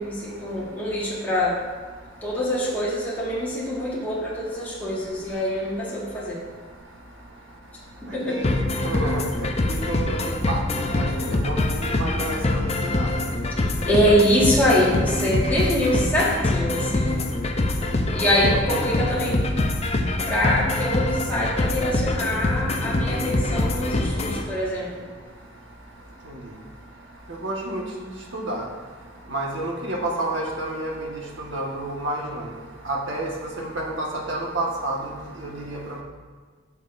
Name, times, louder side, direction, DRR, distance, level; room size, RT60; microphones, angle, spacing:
voice 1, 0.0-1.6 2.2-6.4 8.1-8.5 13.9-17.1 18.1-19.6 20.3-25.0, equal, 10° left, -7 dB, 1.7 m, -24 dB
sound 1, 8.4-24.4, left 2 dB, 35° left, 0.6 m, -24 dB
voice 2, 8.8-13.1 18.7-18.8 26.3-26.4 27.4-27.8 28.3-28.6 29.3-31.1 31.5-32.5 32.8-33.3 33.6-35.0 35.4-36.0, right 1 dB, 70° right, -1 dB, 1.5 m, -30 dB
13.0 x 6.6 x 2.6 m, 1.5 s
head